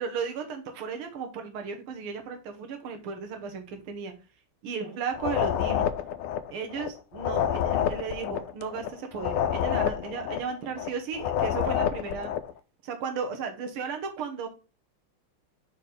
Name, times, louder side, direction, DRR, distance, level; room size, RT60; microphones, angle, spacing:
voice 1, 0.0-4.1 4.6-5.9 6.5-12.3 12.8-14.5, right 6 dB, 80° right, 5 dB, 1.8 m, -35 dB
sound 1, 5.1-12.5, left 9 dB, 85° left, 1.5 m, -28 dB
5.1 x 4.2 x 5.1 m, 0.33 s
omnidirectional pair, 2.3 m